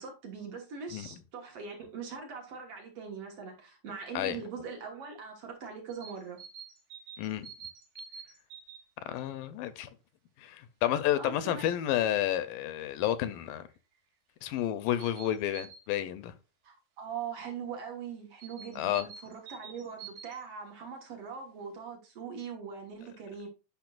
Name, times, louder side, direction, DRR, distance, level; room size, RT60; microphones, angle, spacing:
voice 1, 0.0-6.4 11.2-11.7 16.6-23.5, right 6 dB, 55° right, 1.9 m, -41 dB
sound 1, 5.9-8.8 13.3-13.4 13.7-13.8 15.0-15.8 18.4-20.4, right 7 dB, 85° right, 3.5 m, -47 dB
voice 2, 7.2-7.5 9.1-9.9 10.4-13.7 14.4-16.3 18.8-19.1, left 12 dB, 80° left, 2.2 m, -31 dB
10.5 x 5.6 x 2.4 m
omnidirectional pair, 4.0 m